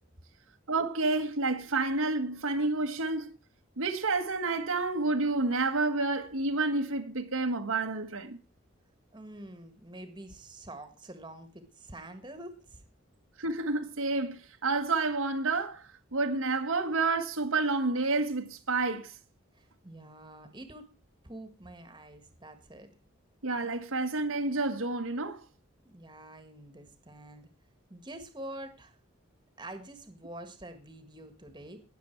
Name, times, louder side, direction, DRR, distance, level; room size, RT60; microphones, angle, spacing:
voice 1, 0.7-3.3 3.8-8.4 13.4-19.1 23.4-25.4, right 3 dB, 80° right, 1.5 m, -29 dB
voice 2, 9.1-12.8 19.5-20.9 21.2-22.9 25.8-27.5 27.9-29.0 29.6-31.8, right 1 dB, 20° right, 1.5 m, -46 dB
19.0 x 7.0 x 4.5 m
head